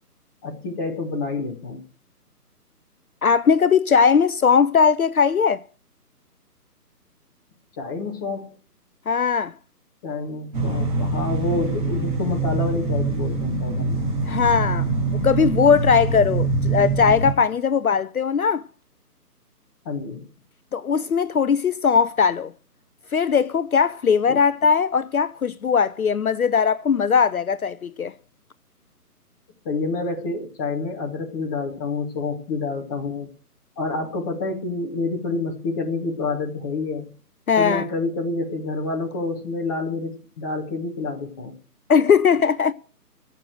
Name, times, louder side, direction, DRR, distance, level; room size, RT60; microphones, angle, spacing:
voice 1, 0.4-1.8 7.8-8.5 10.0-14.0 19.8-20.2 24.3-24.4 29.6-33.3 33.8-37.1 37.6-41.5, left 3 dB, 15° left, 1.2 m, -28 dB
voice 2, 3.2-5.6 9.1-9.5 14.2-18.6 20.7-22.5 23.1-28.1 37.5-37.8 41.9-42.7, left 6 dB, 65° left, 0.6 m, -19 dB
sound 1, 10.5-17.3, right 3 dB, 30° right, 3.9 m, -24 dB
15.0 x 6.6 x 7.7 m
figure-of-eight pair, 145°, 47 cm